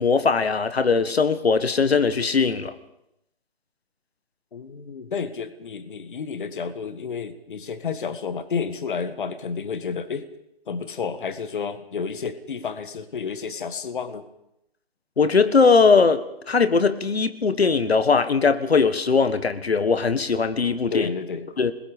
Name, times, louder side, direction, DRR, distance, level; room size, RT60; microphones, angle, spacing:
voice 1, 0.0-2.7 15.2-21.1 21.6-21.7, left 4 dB, 80° left, 12 dB, 1.7 m, -20 dB
voice 2, 4.5-10.3 10.7-14.3 20.9-21.5, left 5 dB, 55° left, 12 dB, 1.6 m, -31 dB
27.5 x 21.0 x 5.2 m, 0.84 s
hypercardioid pair, 155°, 31 cm